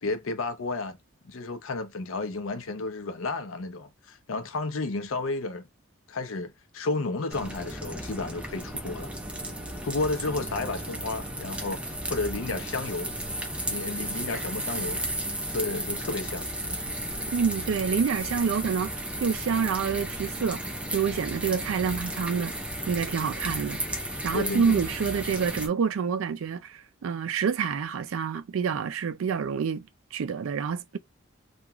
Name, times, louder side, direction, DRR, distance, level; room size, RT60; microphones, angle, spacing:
voice 1, 0.0-1.0 1.2-5.7 6.1-9.1 9.8-13.1 13.7-15.0 15.5-16.9 24.3-24.8, left 3 dB, 85° left, 0.6 m, -32 dB
sound 1, 7.3-25.7, right 1 dB, 5° right, 0.4 m, -34 dB
voice 2, 17.3-22.5 22.9-31.0, right 6 dB, 85° right, 0.4 m, -28 dB
2.9 x 2.3 x 2.2 m
head